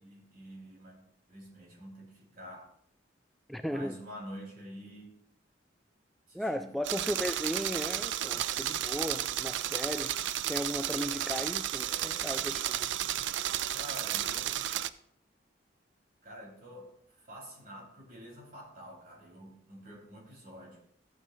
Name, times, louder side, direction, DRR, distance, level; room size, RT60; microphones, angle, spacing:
voice 1, 0.0-2.7 3.6-5.2 6.3-6.7 11.7-12.4 13.7-14.6 16.2-20.8, equal, 50° right, -1 dB, 3.4 m, -48 dB
voice 2, 3.5-4.0 6.3-10.1 10.5-12.9, equal, ahead, 7 dB, 0.3 m, -36 dB
sound 1, 6.8-14.9, right 12 dB, 80° right, 0.4 m, -33 dB
14.5 x 9.1 x 2.5 m, 0.67 s
head